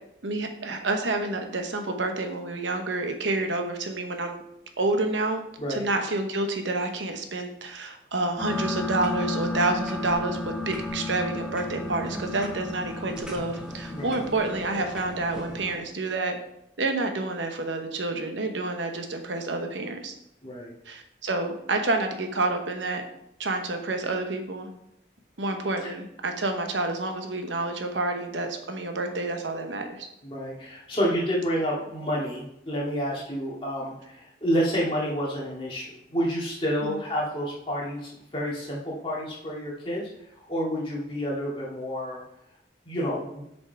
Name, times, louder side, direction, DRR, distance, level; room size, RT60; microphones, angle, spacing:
voice 1, 0.2-4.4 4.8-5.4 5.7-16.4 16.8-20.1 20.9-23.0 23.4-24.7 25.4-30.1 36.8-37.0, right 2 dB, 85° right, 5 dB, 1.0 m, -29 dB
sound 1, 8.4-15.8, left 2 dB, 5° right, 1.2 m, -33 dB
voice 2, 20.4-20.7 25.8-25.9 30.2-33.9 34.4-40.0 40.5-42.2 42.9-43.4, equal, 30° left, -5 dB, 2.1 m, -29 dB
6.8 x 5.4 x 4.6 m, 0.79 s
head